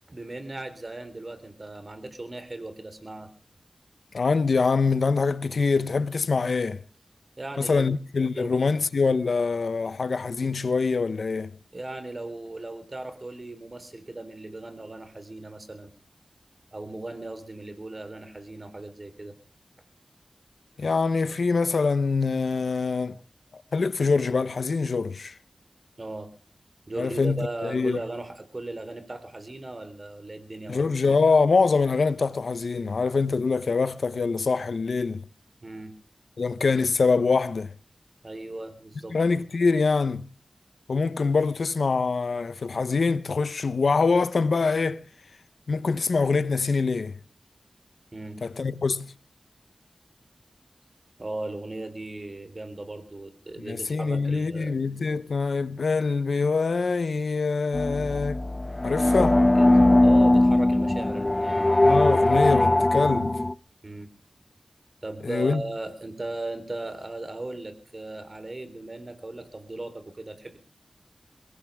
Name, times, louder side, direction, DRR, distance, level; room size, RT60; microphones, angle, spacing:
voice 1, 0.1-3.3 7.4-8.0 8.3-8.5 11.7-15.9 16.7-19.3 26.0-26.3 26.9-30.9 35.6-35.9 38.2-39.2 48.1-48.4 51.2-54.8 59.0-59.3 59.6-59.7 60.0-61.7 63.8-64.1 65.0-70.6, right 2 dB, 45° right, 3.7 m, -37 dB
voice 2, 4.1-6.8 7.6-11.6 20.8-23.2 23.5-25.4 27.0-28.0 30.7-35.3 36.4-37.7 39.1-40.3 40.9-45.0 45.7-47.2 48.4-49.1 53.6-58.4 58.8-59.4 61.8-63.4 65.2-65.6, left 4 dB, 90° left, 0.8 m, -24 dB
sound 1, 57.7-63.5, left 1 dB, 30° left, 0.7 m, -20 dB
22.5 x 17.5 x 3.5 m
wide cardioid pair, 70°, 0 cm